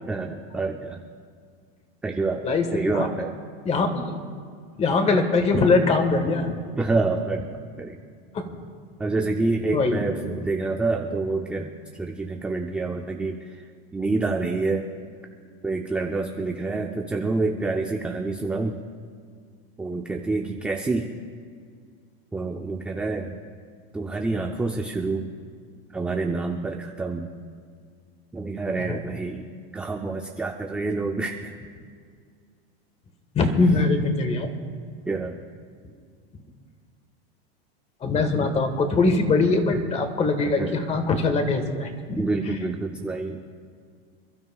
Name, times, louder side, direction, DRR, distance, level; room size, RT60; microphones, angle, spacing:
voice 1, 0.1-1.0 2.0-2.4 2.7-3.4 6.8-8.0 9.0-11.7 12.0-13.6 13.9-14.9 15.6-18.8 19.8-21.1 22.3-23.4 23.9-25.3 25.9-27.3 28.3-29.5 29.7-31.6 35.1-35.4 40.4-40.8 42.2-43.4, right 3 dB, 5° right, 2 dB, 0.3 m, -27 dB
voice 2, 2.4-3.1 3.6-4.2 4.8-6.6 8.3-8.5 9.7-10.0 28.8-29.0 33.3-34.5 38.0-42.6, left 3 dB, 20° left, 7 dB, 1.4 m, -22 dB
28.0 x 12.5 x 2.4 m, 2.1 s
supercardioid pair, 150°, 31 cm